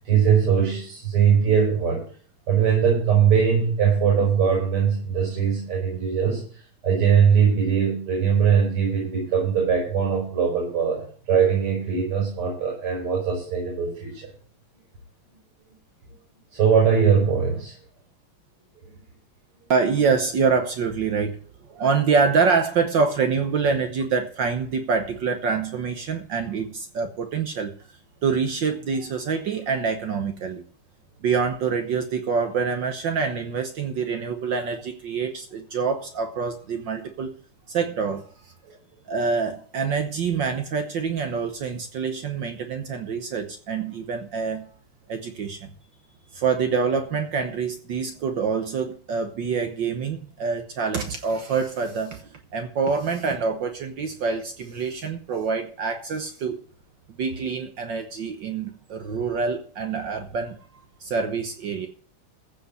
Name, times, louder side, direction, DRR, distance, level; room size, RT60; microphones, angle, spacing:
voice 1, 0.0-2.1 2.5-6.4 6.8-14.3 16.5-17.8, right 7 dB, 85° right, 6.0 m, -21 dB
voice 2, 19.7-21.4 21.7-27.7 28.2-30.6 31.2-37.3 37.7-38.2 39.1-44.7 45.1-45.7 46.3-56.6 57.2-60.6 61.0-61.9, right 5 dB, 60° right, 1.7 m, -26 dB
15.0 x 5.3 x 7.9 m
omnidirectional pair, 2.4 m